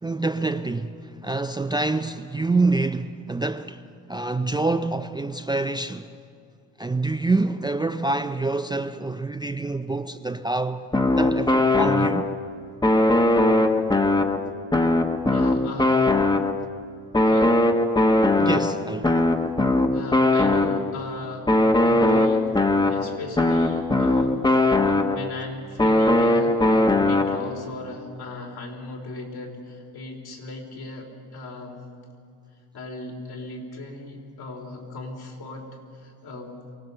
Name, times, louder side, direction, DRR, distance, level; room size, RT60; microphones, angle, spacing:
voice 1, 0.0-3.8 4.1-6.1 6.8-10.9 11.2-12.3 18.4-19.2, right 3 dB, 10° right, 0.4 m, -26 dB
sound 1, 10.9-12.5 12.8-16.8 17.1-21.0 21.5-25.4 25.8-27.6, left 2 dB, 10° left, 0.9 m, -20 dB
voice 2, 15.3-16.2 17.2-17.6 19.4-19.5 19.9-21.5 21.8-22.5 22.9-31.9 32.7-36.5, left 2 dB, 70° left, 3.8 m, -37 dB
23.5 x 17.0 x 6.8 m
cardioid pair, 110°, 39 cm